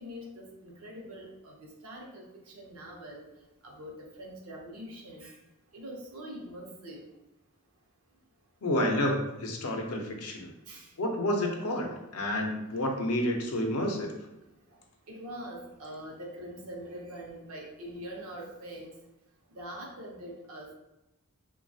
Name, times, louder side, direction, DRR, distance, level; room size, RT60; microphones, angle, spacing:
voice 1, 0.0-1.5 1.8-2.2 2.5-3.2 3.6-5.3 5.7-7.0 10.7-10.9 15.1-18.9 19.5-20.7, equal, 70° right, -1 dB, 0.7 m, -43 dB
voice 2, 8.6-10.5 11.0-14.1, left 1 dB, 75° left, 2 dB, 0.6 m, -30 dB
3.0 x 2.2 x 2.6 m, 0.95 s
head